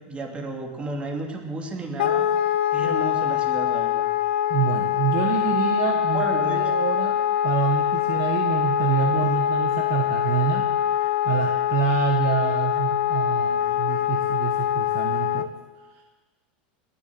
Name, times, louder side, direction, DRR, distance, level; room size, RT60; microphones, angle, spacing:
voice 1, 0.1-2.3 2.7-4.1 5.9-6.6, right 2 dB, 20° right, 1 dB, 2.8 m, -32 dB
Wind instrument woodwind instrument, 2.0-15.5, left 10 dB, 90° left, 0.6 m, -24 dB
voice 2, 4.5-7.2 7.4-10.7 11.2-15.5 16.0-16.1, right 8 dB, 50° right, 3 dB, 1.5 m, -27 dB
20.0 x 7.2 x 7.8 m, 1.3 s
supercardioid pair, 120°, 6 cm